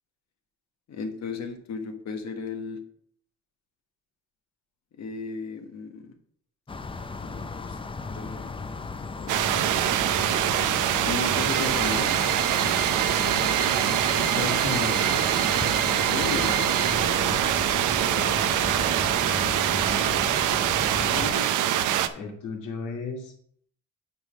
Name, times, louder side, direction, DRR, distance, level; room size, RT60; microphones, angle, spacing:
voice 1, 0.9-2.8 5.0-6.1 7.2-7.8 8.1-8.6 9.2-9.6 10.0-10.7 11.1-12.1 16.1-16.6 18.1-18.5 20.9-21.5, left 4 dB, 60° left, 5 dB, 1.5 m, -35 dB
sound 1, 6.7-21.4, left 4 dB, 15° left, 0.5 m, -36 dB
sound 2, 9.3-22.1, right 11 dB, 80° right, 0.7 m, -24 dB
sound 3, 11.3-16.9, right 5 dB, 30° right, 1.1 m, -33 dB
voice 2, 13.2-15.1 17.0-17.4 22.1-23.3, left 4 dB, 85° left, 0 dB, 2.3 m, -35 dB
9.4 x 3.6 x 6.1 m, 0.63 s
cardioid pair, 90°, 30 cm